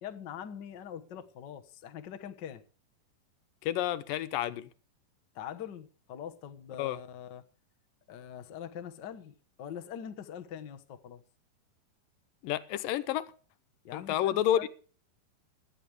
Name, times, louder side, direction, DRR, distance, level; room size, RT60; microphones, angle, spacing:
voice 1, 0.0-2.6 5.3-7.4 8.1-11.2 13.8-14.7, left 9 dB, 55° left, 1.3 m, -43 dB
voice 2, 3.6-4.7 6.8-7.0 12.4-13.3 13.9-14.7, left 11 dB, 90° left, 2.6 m, -30 dB
17.5 x 12.5 x 3.5 m
omnidirectional pair, 3.8 m